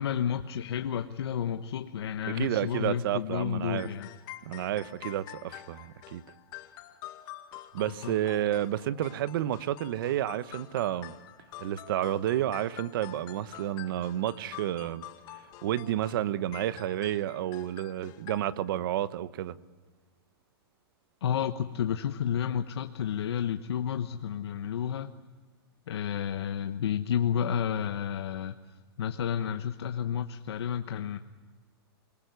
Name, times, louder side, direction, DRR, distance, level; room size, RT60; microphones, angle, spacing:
voice 1, 0.0-4.1 8.0-8.1 21.2-25.1 25.9-28.6 29.0-31.2, left 9 dB, 85° left, 1.2 m, -31 dB
voice 2, 2.2-3.9 4.4-6.2 7.7-11.1 11.6-15.0 15.6-19.6, right 12 dB, 60° right, 1.1 m, -30 dB
sound 1, 3.8-18.4, left 14 dB, 35° left, 2.1 m, -47 dB
28.0 x 20.0 x 9.5 m
supercardioid pair, 155°, 13 cm